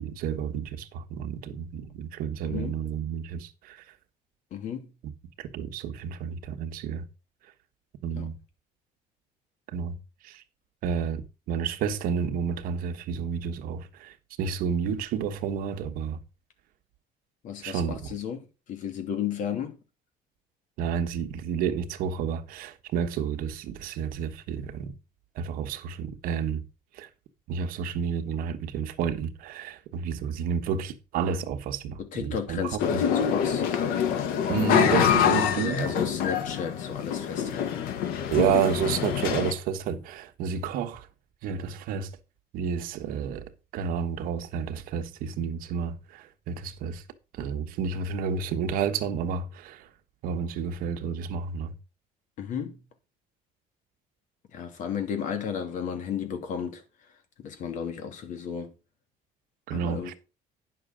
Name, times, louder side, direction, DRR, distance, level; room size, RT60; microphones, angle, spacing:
voice 1, 0.0-3.8 5.0-5.1 5.4-7.1 8.0-8.3 9.7-10.0 10.2-10.4 10.8-16.2 17.6-18.0 20.8-24.9 25.3-26.6 26.9-27.1 27.5-33.0 34.5-35.9 38.3-41.1 41.4-42.1 42.5-43.4 43.7-47.0 47.3-49.9 50.2-51.7 59.7-60.1, right 7 dB, 75° right, 1.3 m, -30 dB
voice 2, 2.4-2.8 4.5-4.9 8.1-8.3 17.4-19.8 32.0-33.6 35.2-37.9 52.4-52.9 54.5-56.8 57.4-58.7 59.7-60.1, left 7 dB, 60° left, 2.6 m, -33 dB
sound 1, 32.8-39.5, left 8 dB, 85° left, 1.6 m, -25 dB
10.0 x 6.8 x 5.0 m
cardioid pair, 160°, 15 cm